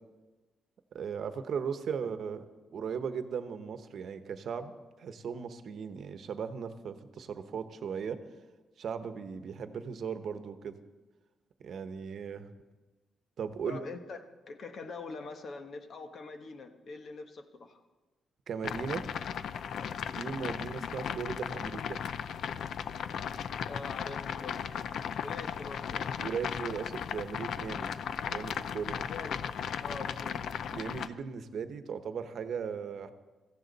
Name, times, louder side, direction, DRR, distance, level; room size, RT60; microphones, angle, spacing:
voice 1, 0.9-2.4 2.7-8.2 8.8-10.8 11.6-12.5 13.4-13.8 18.5-19.1 20.1-22.0 26.2-27.9 28.3-29.0 30.7-33.1, right 6 dB, 65° right, 9 dB, 1.0 m, -37 dB
voice 2, 13.7-14.2 14.5-17.8 19.8-20.0 23.6-24.8 25.1-26.1 29.1-29.3 29.8-30.5, left 4 dB, 55° left, 7 dB, 1.3 m, -44 dB
sound 1, 18.6-31.1, left 8 dB, 70° left, 0.5 m, -36 dB
16.5 x 15.0 x 4.1 m, 1.2 s
cardioid pair, 115°, 0 cm